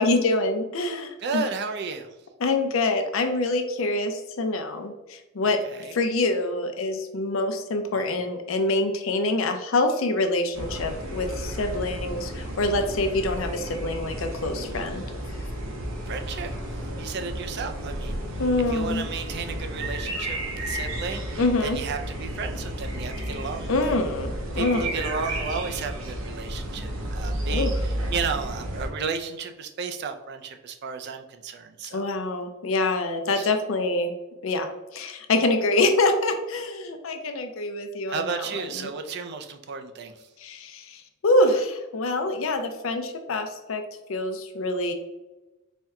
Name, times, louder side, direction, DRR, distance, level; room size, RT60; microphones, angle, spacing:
voice 1, 0.0-1.5 2.4-5.6 5.9-15.0 18.4-19.0 21.4-21.8 23.7-24.9 27.5-27.7 31.9-34.1 34.4-38.9 40.4-43.8 44.1-44.9, left 2 dB, 75° left, 6 dB, 0.5 m, -25 dB
voice 2, 1.2-2.1 5.4-5.9 7.9-8.0 16.1-16.5 16.9-18.4 18.7-23.9 24.6-27.7 28.1-32.1 33.4-33.5 38.1-40.1, right 5 dB, 55° right, 7 dB, 0.4 m, -33 dB
sound 1, 10.5-28.9, right 1 dB, 85° right, 0.8 m, -32 dB
4.3 x 2.2 x 3.5 m, 1.1 s
head